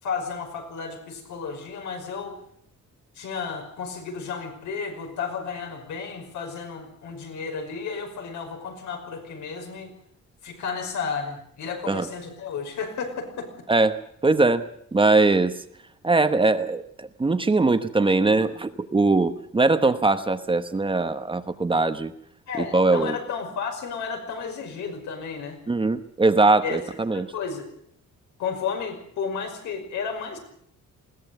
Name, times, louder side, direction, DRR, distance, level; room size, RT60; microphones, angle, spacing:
voice 1, 0.0-2.4 3.2-9.9 10.4-13.5 22.5-25.6 26.6-26.8 27.1-27.7 28.4-30.4, left 5 dB, 85° left, 2 dB, 5.7 m, -32 dB
voice 2, 13.7-15.6 16.0-22.1 22.6-23.2 25.7-27.3, right 3 dB, 15° right, 9 dB, 1.0 m, -21 dB
21.0 x 17.5 x 7.9 m, 0.67 s
cardioid pair, 145°, 29 cm